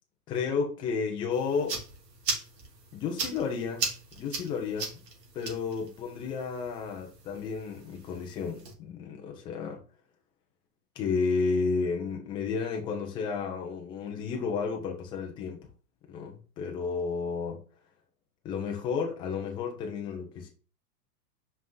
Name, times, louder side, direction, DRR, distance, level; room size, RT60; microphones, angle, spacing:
voice 1, 0.3-1.8 2.9-4.9 5.3-9.8 11.0-15.7 16.1-17.6 18.4-20.5, left 5 dB, 10° left, 0.6 m, -32 dB
sound 1, 1.3-8.7, right 4 dB, 90° right, 2.9 m, -38 dB
5.5 x 5.4 x 3.8 m
supercardioid pair, 165°, 47 cm